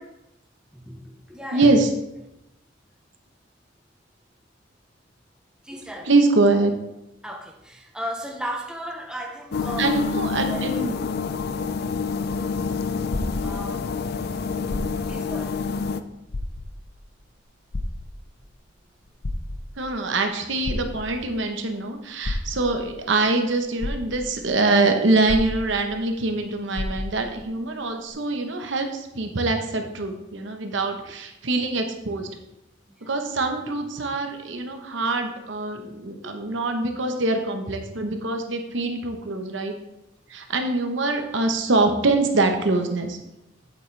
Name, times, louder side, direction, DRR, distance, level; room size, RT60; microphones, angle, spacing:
voice 1, 0.7-1.9 5.6-6.1 7.2-10.6 13.4-13.9 15.1-15.7 33.0-33.2, equal, 5° right, 0.7 m, -35 dB
voice 2, 1.5-1.9 6.1-6.7 9.8-10.9 19.8-32.3 33.0-39.7 40.3-43.2, right 3 dB, 65° right, 0.9 m, -24 dB
sound 1, 9.5-16.0, left 5 dB, 55° left, 0.4 m, -27 dB
sound 2, 13.1-14.0 14.6-15.3 15.7-15.8 16.3-17.0 17.7-18.5 19.1-19.9 20.6-21.4 22.2-22.9 23.5-23.6 23.8-24.5 25.3-26.1 26.3-26.4 26.7-27.4 28.1-28.2, left 2 dB, 80° left, 0.9 m, -31 dB
8.4 x 7.2 x 3.3 m
head